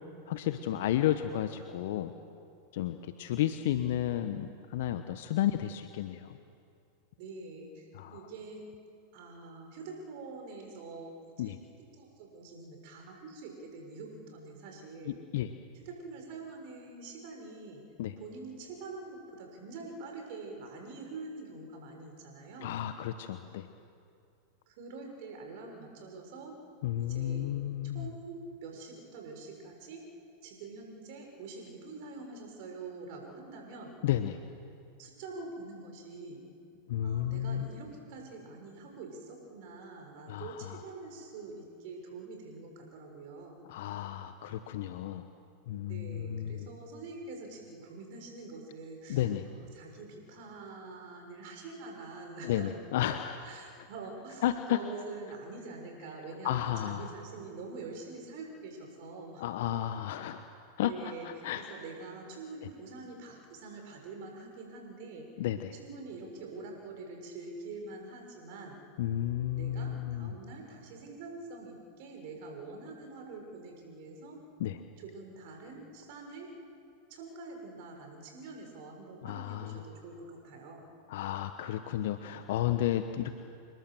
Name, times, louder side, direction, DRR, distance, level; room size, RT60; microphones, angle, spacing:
voice 1, 0.3-2.1 2.7-6.4 7.9-8.2 11.4-11.6 15.1-15.5 18.0-18.1 22.6-23.7 26.8-28.1 34.0-34.4 36.9-37.7 40.3-40.8 43.7-45.3 45.7-46.7 49.1-49.4 52.4-53.4 54.4-54.8 56.4-57.1 59.4-60.4 60.8-61.7 65.4-65.7 69.0-70.4 74.6-74.8 79.2-79.8 81.1-83.3, left 12 dB, 60° left, 9 dB, 1.1 m, -32 dB
voice 2, 7.2-8.6 9.1-11.1 11.4-11.5 11.9-15.2 15.7-17.8 18.2-22.7 24.7-26.5 27.0-27.6 27.8-30.1 30.4-33.9 35.0-36.5 37.0-43.6 45.9-52.7 53.1-59.5 60.8-65.2 65.7-68.8 69.5-74.4 75.0-76.5 77.1-80.8, right 3 dB, 55° right, 3 dB, 6.3 m, -45 dB
28.0 x 20.0 x 7.8 m, 2.5 s
figure-of-eight pair, 90°, 0 cm